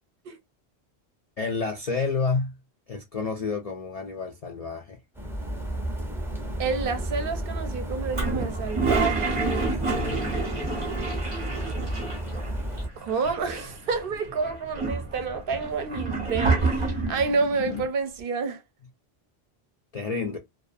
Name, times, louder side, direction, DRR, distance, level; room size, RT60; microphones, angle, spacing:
voice 1, 1.4-2.6 2.9-5.0 9.9-10.2 19.9-20.4, left 4 dB, 55° left, 0.4 m, -29 dB
sound 1, 5.2-12.9, right 1 dB, 5° right, 0.5 m, -32 dB
voice 2, 6.6-9.4 13.0-18.6, right 4 dB, 65° right, 0.7 m, -29 dB
Toilet flush, 8.1-12.5 12.8-12.9 13.1-13.9 14.4-17.2, right 3 dB, 35° right, 0.8 m, -28 dB
sound 2, 11.9-17.9, left 5 dB, 85° left, 1.0 m, -43 dB
2.4 x 2.3 x 2.5 m
omnidirectional pair, 1.1 m